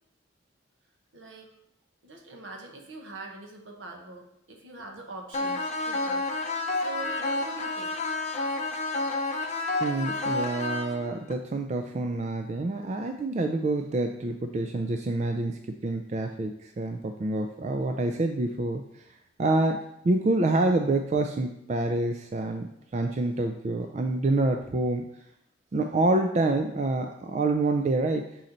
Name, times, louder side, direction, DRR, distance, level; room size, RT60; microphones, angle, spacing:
voice 1, 1.1-1.5 2.0-8.0, right 3 dB, 80° right, 2 dB, 1.1 m, -43 dB
sound 1, 5.3-11.3, left 2 dB, 35° left, 0.6 m, -30 dB
voice 2, 9.8-18.8 19.4-25.0 25.7-28.3, right 2 dB, 35° right, 4 dB, 0.3 m, -27 dB
6.3 x 4.2 x 3.9 m, 0.80 s
head